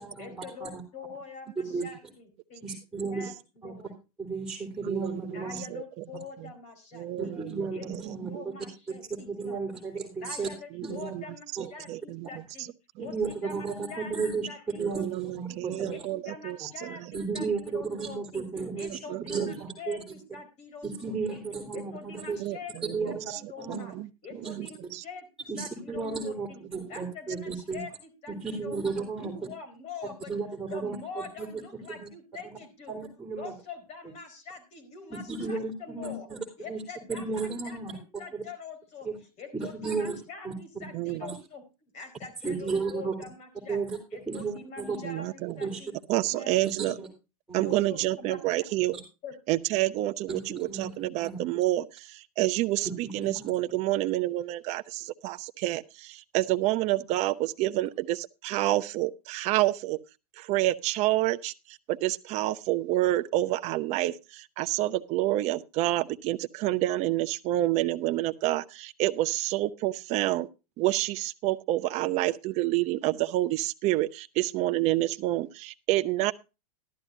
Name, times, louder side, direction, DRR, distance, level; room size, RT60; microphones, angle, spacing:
voice 1, 0.2-4.0 5.3-7.4 7.7-9.8 10.2-12.7 13.0-15.6 15.9-18.5 18.8-21.4 21.7-22.9 23.4-23.9 24.2-25.3 25.6-28.8 29.1-30.3 30.7-33.0 33.4-36.3 36.6-37.3 37.6-41.6 41.9-43.8 44.1-45.9 46.2-46.5 46.8-47.1 47.6-48.4 49.2-49.3, left 5 dB, 35° left, 4.6 m, -45 dB
voice 2, 2.6-3.3 3.6-3.7 4.2-5.6 7.2-8.3 9.3-10.5 10.8-11.1 11.6-11.7 13.0-14.5 14.8-15.9 17.1-18.9 19.3-20.0 20.8-22.4 22.9-23.3 23.6-23.8 24.3-24.5 25.5-27.8 28.3-29.3 30.3-31.5 32.0-32.1 32.9-33.5 35.1-36.4 36.7-36.8 37.1-37.9 38.3-38.4 39.0-39.1 39.5-40.2 40.4-40.5 41.2-41.3 42.4-43.1 43.7-44.0 44.3-45.0 45.6-45.8 46.1-46.2 47.0-47.1 47.5-47.6 48.9-49.0 50.3-50.9 51.2-51.4 52.8-53.5, right 4 dB, 5° right, 3.8 m, -33 dB
voice 3, 4.8-6.0 6.4-6.5 6.9-8.5 10.7-11.2 11.5-12.3 14.8-17.2 19.1-19.5 22.4-24.1 24.5-24.7 24.9-25.0 40.9-41.2 45.0-45.6 46.1-47.0 47.5-48.9 49.5-60.0 60.4-70.5 70.8-76.3, right 16 dB, 35° right, 0.7 m, -29 dB
14.0 x 12.5 x 2.7 m
hypercardioid pair, 130°, 19 cm